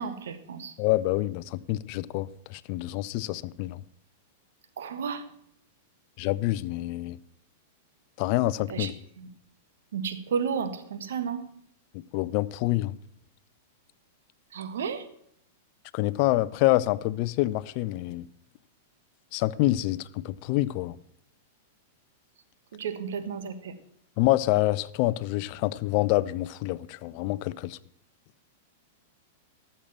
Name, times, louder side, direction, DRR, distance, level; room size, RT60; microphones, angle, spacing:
voice 1, 0.0-0.7 4.8-5.2 8.7-9.3 9.9-11.4 14.5-15.0 22.7-23.7, right 6 dB, 70° right, 1.4 m, -32 dB
voice 2, 0.8-3.8 6.2-7.2 8.2-8.9 11.9-13.0 15.9-18.2 19.3-21.0 24.2-27.8, left 17 dB, 50° left, 0.5 m, -27 dB
13.0 x 6.8 x 7.4 m
hypercardioid pair, 105°, 0 cm